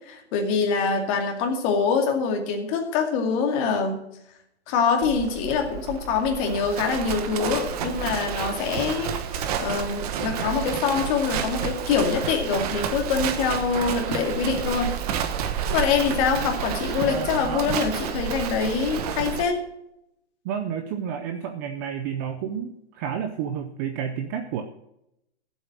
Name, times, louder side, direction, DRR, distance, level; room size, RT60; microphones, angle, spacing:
voice 1, 0.1-4.0 4.7-14.9 15.7-19.6, left 5 dB, 30° left, 3 dB, 2.3 m, -25 dB
Livestock farm animals working animals, 5.0-19.4, right 8 dB, 35° right, 1.2 m, -30 dB
voice 2, 20.4-24.6, right 8 dB, 15° right, 6 dB, 0.5 m, -30 dB
13.0 x 8.0 x 6.1 m, 0.80 s
hypercardioid pair, 155°, 33 cm